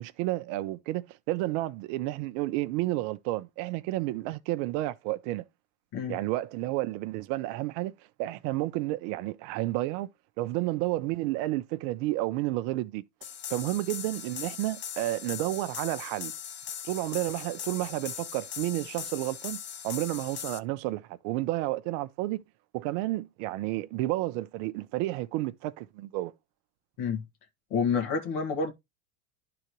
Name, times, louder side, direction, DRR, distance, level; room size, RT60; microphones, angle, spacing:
voice 1, 0.0-5.4 6.1-7.9 8.2-10.1 10.4-13.0 13.5-16.3 16.8-19.6 19.8-22.4 22.7-26.3, right 17 dB, 55° right, 0.7 m, -31 dB
sound 1, 13.2-20.6, left 9 dB, 25° left, 0.5 m, -39 dB
voice 2, 27.7-28.7, left 5 dB, 60° left, 1.8 m, -28 dB
11.5 x 3.9 x 3.0 m
supercardioid pair, 115°, 44 cm